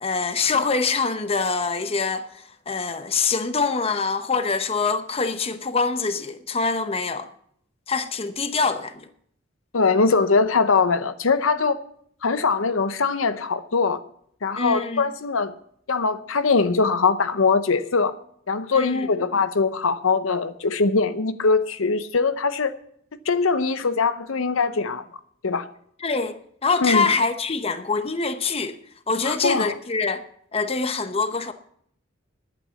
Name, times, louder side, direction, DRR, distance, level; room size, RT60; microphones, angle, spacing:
voice 1, 0.0-2.2 2.7-7.3 7.9-9.1 14.5-15.1 18.7-19.0 26.0-28.8 29.1-30.2 30.5-31.5, left 4 dB, 30° left, 0.8 m, -24 dB
voice 2, 9.7-11.8 12.2-14.0 14.4-15.5 15.9-18.1 18.5-22.7 23.3-25.0 25.4-25.7 26.8-27.1 29.2-29.7, left 4 dB, 80° left, 0.8 m, -22 dB
11.0 x 8.7 x 6.9 m
head